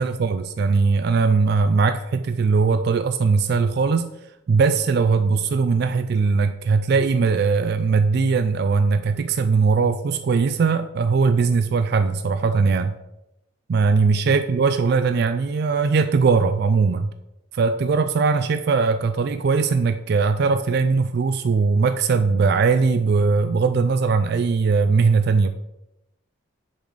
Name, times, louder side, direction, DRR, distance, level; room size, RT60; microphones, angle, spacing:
voice 1, 0.0-4.1 4.5-12.9 13.7-17.1 17.5-25.5, right 4 dB, 50° right, 9 dB, 0.3 m, -20 dB
6.7 x 4.1 x 4.8 m, 0.89 s
head